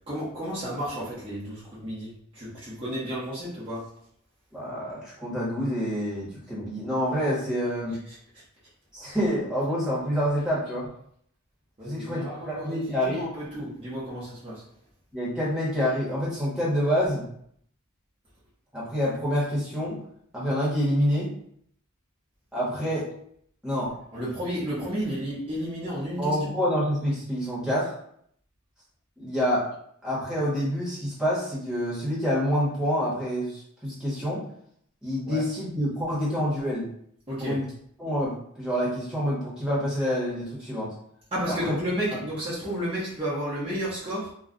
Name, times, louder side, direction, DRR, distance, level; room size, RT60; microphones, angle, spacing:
voice 1, 0.1-3.9 8.1-8.2 11.8-14.6 24.1-26.5 35.3-35.4 37.3-37.6 41.3-44.3, equal, 25° right, -10 dB, 0.8 m, -32 dB
voice 2, 4.5-8.0 8.9-10.9 11.8-13.3 15.1-17.2 18.7-20.0 20.3-21.3 22.5-23.1 23.6-24.0 26.2-27.9 29.2-29.6 30.0-34.4 35.0-36.9 37.4-37.7 38.0-40.9 41.5-41.8 42.1-42.2, equal, 5° right, -7 dB, 1.0 m, -27 dB
2.3 x 2.2 x 3.7 m, 0.66 s
head